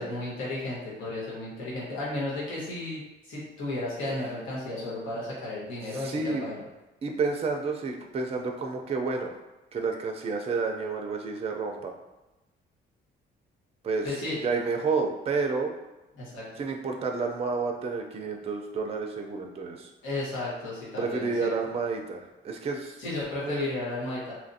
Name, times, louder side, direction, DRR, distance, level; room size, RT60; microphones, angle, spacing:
voice 1, 0.0-6.6 14.0-14.4 16.1-16.4 20.0-21.7 23.0-24.3, left 2 dB, 90° left, -7 dB, 1.1 m, -34 dB
voice 2, 5.9-6.4 7.0-9.3 9.7-11.9 13.8-14.1 14.4-15.7 16.6-19.9 21.0-23.0 23.4-23.7, right 4 dB, 30° right, 3 dB, 0.4 m, -30 dB
2.8 x 2.5 x 2.6 m, 1.0 s
cardioid pair, 90°, 20 cm